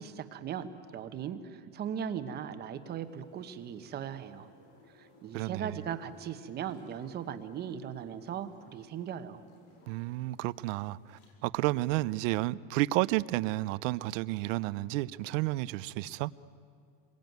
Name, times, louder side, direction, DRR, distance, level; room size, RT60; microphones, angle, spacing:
voice 1, 0.0-4.5 4.9-9.4, right 8 dB, 25° right, 1.0 m, -38 dB
sound 1, 2.7-11.3, left 2 dB, 90° left, 7.6 m, -63 dB
voice 2, 5.3-5.8 9.9-16.3, right 18 dB, 65° right, 0.7 m, -31 dB
27.5 x 22.5 x 9.3 m
cardioid pair, 180°, 41 cm